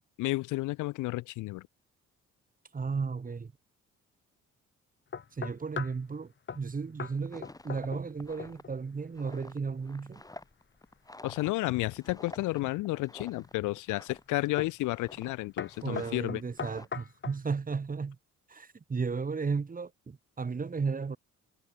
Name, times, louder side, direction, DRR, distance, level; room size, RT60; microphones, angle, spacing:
voice 1, 0.2-1.6 11.2-16.4, left 20 dB, 85° left, 0.5 m, -32 dB
voice 2, 2.7-3.5 5.4-10.2 15.8-18.2 18.5-21.2, right 5 dB, 30° right, 1.7 m, -34 dB
sound 1, 5.1-6.0 6.5-6.7 7.0-7.2 7.4-8.1 8.4-8.8 12.1-12.8 13.4-13.8 14.6-14.8 15.1-15.3 15.6-17.4, left 6 dB, 40° left, 2.1 m, -40 dB
sound 2, 7.0-14.5 14.8-15.3 15.6-16.9, left 2 dB, 10° left, 4.3 m, -50 dB
cardioid pair, 90°, 30 cm